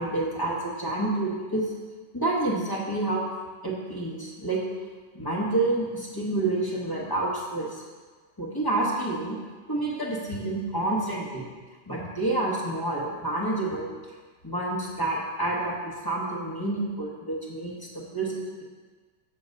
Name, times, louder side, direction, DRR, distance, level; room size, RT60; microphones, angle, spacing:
voice 1, 0.0-1.7 2.1-3.2 3.6-4.6 5.1-7.8 8.4-9.4 9.7-11.5 11.9-13.9 14.4-18.6, right 2 dB, 15° left, -5 dB, 0.7 m, -28 dB
6.9 x 3.9 x 6.4 m, 1.4 s
omnidirectional pair, 2.1 m